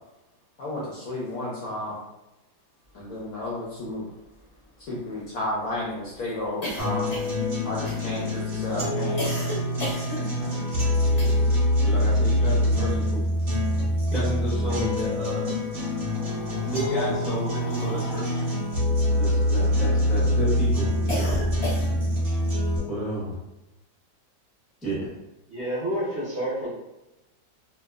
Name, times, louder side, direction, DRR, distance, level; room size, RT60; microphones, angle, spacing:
voice 1, 0.6-1.9 2.9-4.0 4.9-7.1 7.6-9.3, left 1 dB, 65° left, -6 dB, 0.9 m, -32 dB
sound 1, 3.5-3.6 3.8-3.9 4.2-11.7 12.0-13.6 13.9-14.8 15.6-20.1 20.5-22.2, left 1 dB, 90° left, 0.3 m, -36 dB
sound 2, 6.8-22.8, left 1 dB, 35° right, 1.2 m, -25 dB
voice 2, 11.0-11.3 11.8-13.2 14.1-15.5 16.6-18.4 19.1-21.4 22.9-23.3 24.8-25.1, right 1 dB, ahead, -7 dB, 0.4 m, -31 dB
voice 3, 25.5-26.7, equal, 55° right, -10 dB, 0.7 m, -29 dB
3.0 x 2.2 x 2.3 m, 0.95 s
omnidirectional pair, 2.0 m